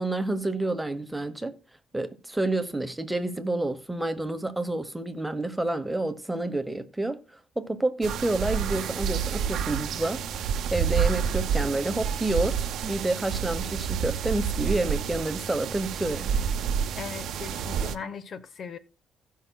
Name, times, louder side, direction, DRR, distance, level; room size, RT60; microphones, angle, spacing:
voice 1, 0.0-1.5 1.9-7.2 7.6-16.5, right 2 dB, 10° right, 1.0 m, -29 dB
sound 1, 8.0-18.0, right 7 dB, 75° right, 0.6 m, -29 dB
voice 2, 17.0-18.8, left 6 dB, 55° left, 0.8 m, -38 dB
16.5 x 5.6 x 2.3 m
cardioid pair, 90°, 0 cm